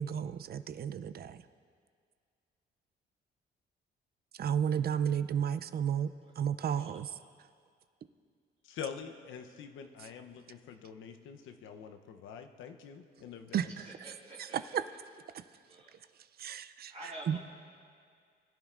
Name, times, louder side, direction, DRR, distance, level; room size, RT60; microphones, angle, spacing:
voice 1, 0.0-1.4 4.4-6.1 6.4-7.1 13.5-13.7 16.4-16.9 17.3-17.4, right 8 dB, 50° right, 12 dB, 0.5 m, -32 dB
voice 2, 8.6-13.7, left 7 dB, 85° left, 6 dB, 0.8 m, -45 dB
voice 3, 13.8-14.6 15.7-15.9 16.9-17.4, right 1 dB, 30° right, -5 dB, 2.0 m, -48 dB
21.5 x 10.5 x 2.5 m, 2.1 s
cardioid pair, 90°, 20 cm